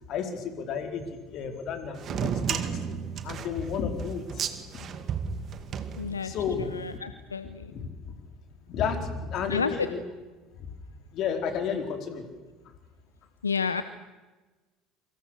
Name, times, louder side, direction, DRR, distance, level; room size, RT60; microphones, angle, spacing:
voice 1, 0.1-2.9 3.2-4.5 4.7-4.9 6.2-6.6 6.9-7.0 7.7-7.9 8.7-10.0 10.6-10.7 11.1-12.2, left 6 dB, 50° left, 5 dB, 4.5 m, -32 dB
sound 1, 2.0-6.5, right 7 dB, 45° right, 2.2 m, -33 dB
voice 2, 6.0-7.7 9.5-9.9 13.4-13.8, left 5 dB, 85° left, 12 dB, 0.8 m, -31 dB
28.5 x 25.0 x 6.7 m, 1.2 s
figure-of-eight pair, 65°, 0 cm